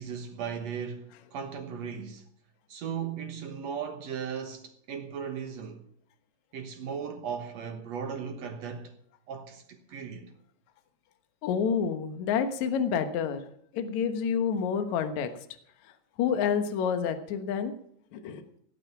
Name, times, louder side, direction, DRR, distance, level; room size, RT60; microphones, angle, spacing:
voice 1, 0.0-2.3 2.7-5.8 6.5-8.9 9.3-10.3, right 7 dB, 65° right, 1.7 m, -37 dB
voice 2, 11.4-13.4 13.7-15.3 16.2-17.7 18.1-18.4, left 7 dB, 60° left, 2.1 m, -28 dB
18.0 x 8.8 x 5.9 m
omnidirectional pair, 4.6 m